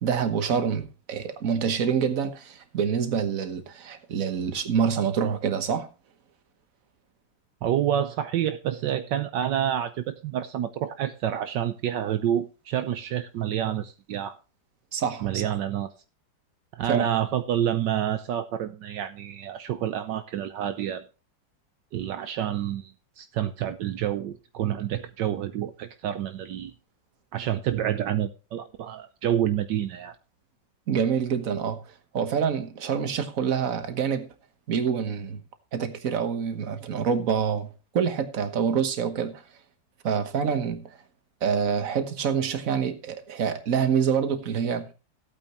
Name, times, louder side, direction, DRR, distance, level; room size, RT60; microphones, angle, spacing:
voice 1, 0.0-5.9 14.9-15.5 16.9-17.1 30.9-34.3 34.7-35.4 35.7-39.4 40.0-41.0 41.4-44.9, right 7 dB, 50° right, 1.6 m, -26 dB
voice 2, 7.6-14.4 15.2-15.9 16.7-21.0 21.9-26.7 27.3-30.2, right 10 dB, 75° right, 1.4 m, -28 dB
15.5 x 8.8 x 3.0 m
omnidirectional pair, 2.0 m